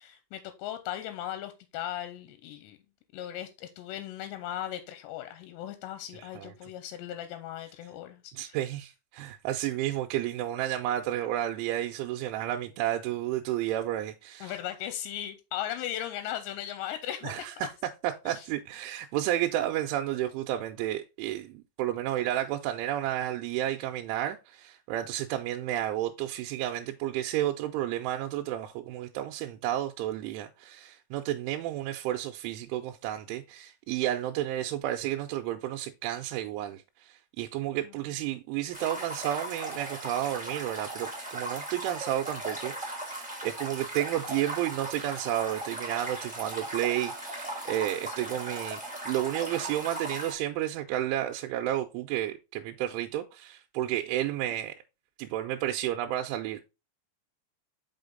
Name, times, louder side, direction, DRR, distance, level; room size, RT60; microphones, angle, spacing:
voice 1, 0.0-2.8 3.1-8.6 14.4-17.7 18.3-18.5 37.8-38.0 48.1-48.2, left 11 dB, 80° left, 2.7 m, -38 dB
voice 2, 6.2-6.5 8.3-14.5 17.2-17.7 18.0-48.8 49.1-54.8 55.2-56.6, right 13 dB, 85° right, 3.0 m, -31 dB
sound 1, 38.7-50.3, right 1 dB, 5° right, 1.2 m, -38 dB
5.8 x 5.6 x 3.8 m
omnidirectional pair, 5.4 m